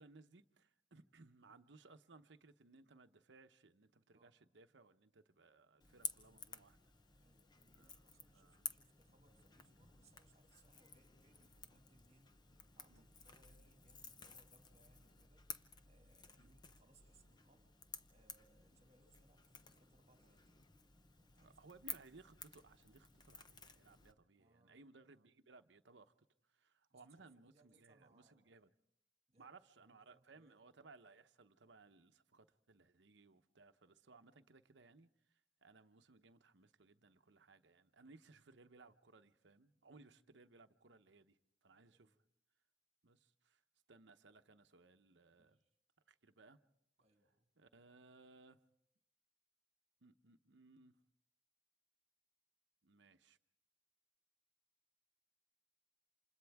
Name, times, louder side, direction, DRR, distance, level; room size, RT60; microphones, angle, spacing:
voice 1, 0.0-6.8 7.7-8.6 12.9-13.1 16.4-16.5 21.4-28.7 29.4-42.2 43.0-43.6 43.9-45.6 46.1-46.6 47.6-48.6 50.0-50.9 52.8-53.4, right 3 dB, 70° right, 0.9 m, -64 dB
Crackle / Crack, 5.8-24.1, left 5 dB, 25° left, 0.7 m, -54 dB
voice 2, 7.2-12.3 12.8-17.8 18.1-20.5 21.2-21.6 24.4-24.8 26.9-28.6 29.3-29.5 29.8-30.6 38.1-38.2 41.9-42.2 45.4-45.7 47.0-47.5, right 2 dB, 35° right, 2.1 m, -73 dB
29.0 x 27.0 x 3.5 m
head